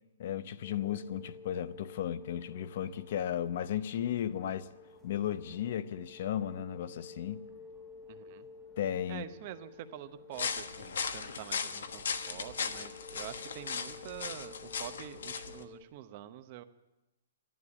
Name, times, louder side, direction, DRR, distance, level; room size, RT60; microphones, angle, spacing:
voice 1, 0.2-4.7 5.0-7.4 8.8-9.2, left 10 dB, 50° left, 0.7 m, -35 dB
sound 1, 0.6-15.8, left 4 dB, 10° left, 1.2 m, -52 dB
voice 2, 8.1-8.5 9.1-16.6, right 11 dB, 35° right, 0.9 m, -46 dB
sound 2, 10.3-15.6, left 6 dB, 80° left, 1.3 m, -37 dB
12.5 x 11.0 x 9.7 m
hypercardioid pair, 165°, 0 cm